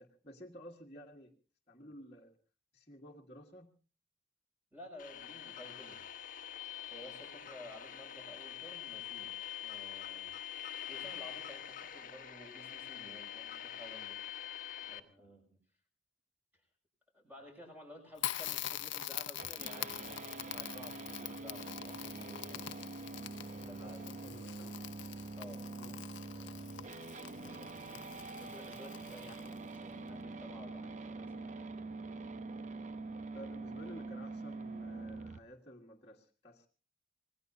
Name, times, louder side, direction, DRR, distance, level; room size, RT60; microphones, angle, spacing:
voice 1, 0.0-1.3 1.7-2.3 2.7-3.7 23.6-24.8 25.8-26.0 27.9-28.1 33.3-36.7, equal, 30° left, -4 dB, 1.7 m, -53 dB
voice 2, 4.7-6.0 6.9-9.3 9.6-10.3 10.7-14.2 14.8-15.6 17.1-22.7 23.3-24.1 25.4-25.7 26.2-27.7 28.1-31.9, left 1 dB, 10° right, 2 dB, 6.7 m, -54 dB
sound 1, 5.0-15.0, left 10 dB, 50° left, 1.2 m, -45 dB
Crackle, 18.2-29.8, left 12 dB, 75° left, 0.7 m, -44 dB
sound 2, 19.4-35.4, right 3 dB, 40° right, 0.8 m, -45 dB
26.0 x 19.0 x 2.7 m, 0.35 s
head